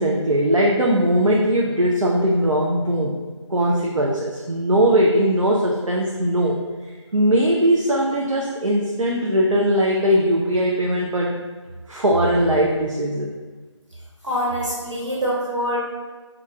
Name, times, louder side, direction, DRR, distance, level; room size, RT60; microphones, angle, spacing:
voice 1, 0.0-3.1 3.5-6.6 7.1-11.4 11.9-13.3, equal, 90° right, -3 dB, 0.5 m, -20 dB
voice 2, 14.2-15.8, equal, 70° right, -6 dB, 1.4 m, -24 dB
3.0 x 2.4 x 3.5 m, 1.4 s
figure-of-eight pair, 160°, 16 cm